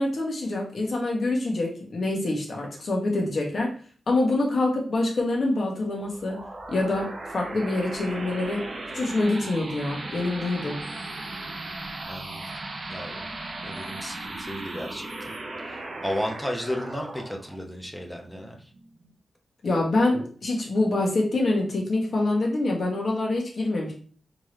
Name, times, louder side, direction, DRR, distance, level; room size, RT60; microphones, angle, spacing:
voice 1, 0.0-3.7 4.1-6.4 6.7-8.7 8.9-10.8 19.6-23.9, left 2 dB, 55° left, -1 dB, 1.2 m, -25 dB
sound 1, 6.0-19.1, right 2 dB, 45° right, 0.7 m, -37 dB
voice 2, 12.1-12.5 12.9-13.3 13.6-15.3 15.7-18.7, equal, 5° left, 2 dB, 0.8 m, -34 dB
3.6 x 3.1 x 3.1 m, 0.43 s
wide cardioid pair, 100°, 0 cm